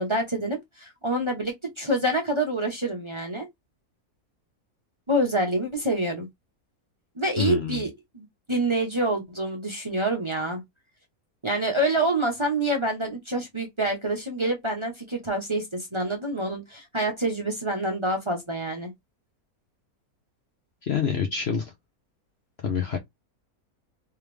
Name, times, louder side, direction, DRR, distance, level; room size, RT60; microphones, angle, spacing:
voice 1, 0.0-3.5 5.1-6.3 7.2-10.6 11.4-18.9, right 1 dB, 20° right, 0.9 m, -27 dB
voice 2, 7.4-7.9 20.8-21.7 22.6-23.0, left 7 dB, 55° left, 0.9 m, -26 dB
3.5 x 3.2 x 3.3 m
omnidirectional pair, 1.6 m